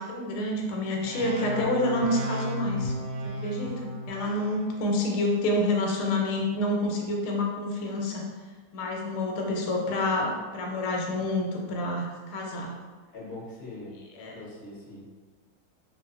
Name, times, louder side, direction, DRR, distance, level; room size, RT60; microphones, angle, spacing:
voice 1, 0.0-2.9 3.2-8.2 8.7-12.7 14.2-14.4, left 1 dB, 85° left, 0 dB, 1.4 m, -28 dB
sound 1, 1.0-4.6, equal, 70° right, 1.1 m, -34 dB
voice 2, 13.1-14.0 14.3-15.1, left 2 dB, 50° left, -6 dB, 0.7 m, -42 dB
3.4 x 2.8 x 2.4 m, 1.4 s
omnidirectional pair, 2.3 m